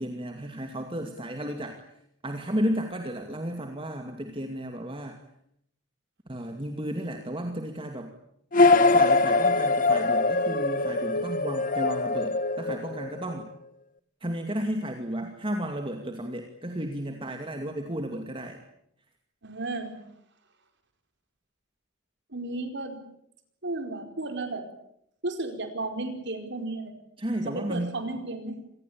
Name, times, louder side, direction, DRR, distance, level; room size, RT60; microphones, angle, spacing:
voice 1, 0.0-1.8 2.2-5.2 6.3-8.1 8.7-13.5 14.2-18.6 27.2-28.0, equal, 25° right, 4 dB, 2.4 m, -33 dB
sound 1, 8.5-13.4, left 3 dB, 40° left, 1.1 m, -23 dB
voice 2, 19.4-20.0 22.3-23.0 23.6-24.7 25.2-26.9 27.5-28.6, right 2 dB, 60° right, 7 dB, 4.8 m, -33 dB
27.0 x 20.0 x 8.8 m, 0.74 s
head